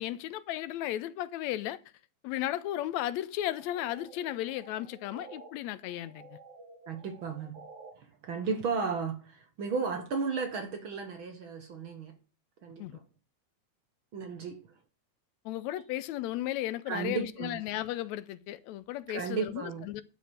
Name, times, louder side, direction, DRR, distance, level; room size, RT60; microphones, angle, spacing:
voice 1, 0.0-1.8 2.2-6.3 12.8-13.0 15.5-20.0, left 13 dB, 80° left, 1.9 m, -35 dB
sound 1, 3.4-5.5 5.8-7.9, right 3 dB, 85° right, 4.4 m, -52 dB
voice 2, 6.9-7.5 8.0-12.2 12.6-13.0 14.1-14.6 16.9-17.6 19.1-19.9, right 5 dB, 55° right, 1.6 m, -34 dB
11.0 x 5.1 x 5.1 m
omnidirectional pair, 3.3 m